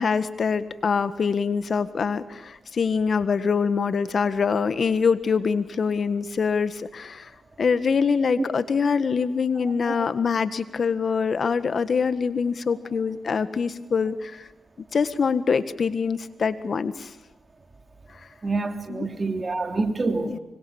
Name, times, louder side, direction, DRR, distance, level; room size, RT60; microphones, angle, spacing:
voice 1, 0.0-7.3 7.6-14.5 14.9-17.1 18.1-18.2 18.9-19.1 20.2-20.4, left 5 dB, 60° left, 1.6 m, -24 dB
voice 2, 9.6-10.1 18.4-20.4, right 3 dB, 40° right, 3.3 m, -27 dB
25.0 x 23.5 x 7.2 m
supercardioid pair, 45°, 0 cm